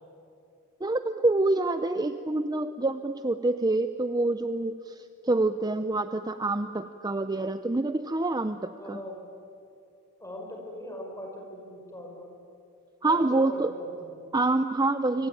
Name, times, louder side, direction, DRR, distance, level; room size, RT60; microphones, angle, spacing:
voice 1, 0.8-9.0 13.0-13.7 14.3-15.3, right 2 dB, 20° right, 10 dB, 0.6 m, -26 dB
voice 2, 8.8-9.2 10.2-12.3 13.0-14.2 15.1-15.3, left 1 dB, 15° left, 1 dB, 5.6 m, -41 dB
25.5 x 25.0 x 9.1 m, 2.6 s
head